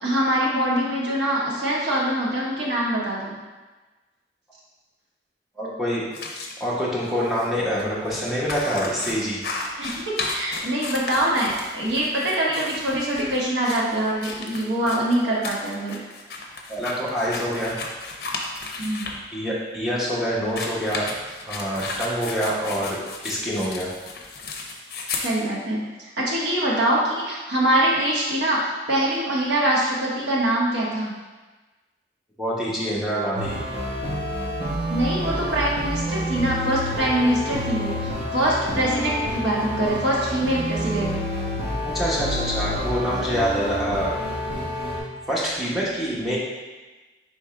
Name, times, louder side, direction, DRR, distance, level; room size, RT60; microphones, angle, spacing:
voice 1, 0.0-3.4 9.8-16.0 18.8-19.0 25.2-31.1 34.9-41.1, right 1 dB, 85° right, -5 dB, 1.1 m, -24 dB
voice 2, 5.6-6.0 6.6-9.4 16.7-17.7 19.3-21.1 21.5-23.0 23.2-23.9 32.4-33.6 41.8-44.1 45.3-46.4, equal, ahead, -7 dB, 0.9 m, -26 dB
sound 1, 6.1-6.5 7.3-7.5 7.7-19.2 20.4-25.3, left 3 dB, 60° left, 0.5 m, -34 dB
sound 2, 33.3-45.0, equal, 35° right, 1.1 m, -28 dB
3.6 x 3.1 x 4.7 m, 1.2 s
head